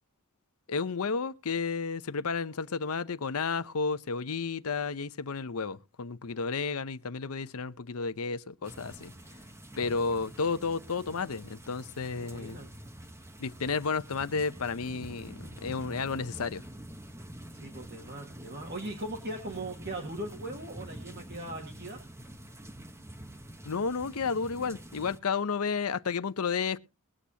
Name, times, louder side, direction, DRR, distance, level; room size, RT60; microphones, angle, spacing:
voice 1, 0.7-9.1 9.8-12.6 13.4-16.6 23.7-26.8, left 5 dB, 90° left, 0.7 m, -32 dB
sound 1, 8.6-25.2, right 1 dB, 10° right, 0.9 m, -47 dB
voice 2, 12.2-12.7 17.5-22.0, right 1 dB, 50° right, 2.0 m, -39 dB
21.5 x 8.2 x 2.8 m
head